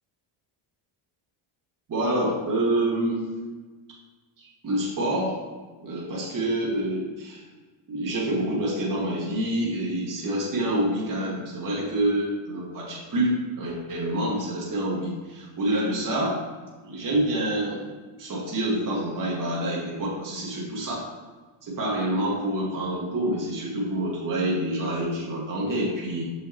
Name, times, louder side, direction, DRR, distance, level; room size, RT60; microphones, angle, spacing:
voice 1, 1.9-3.2 4.4-5.4 5.8-7.4 7.9-16.4 16.8-17.9 18.2-21.1 21.6-26.2, right 1 dB, 40° right, -4 dB, 2.2 m, -27 dB
7.3 x 5.6 x 3.2 m, 1.3 s
cardioid pair, 120°, 49 cm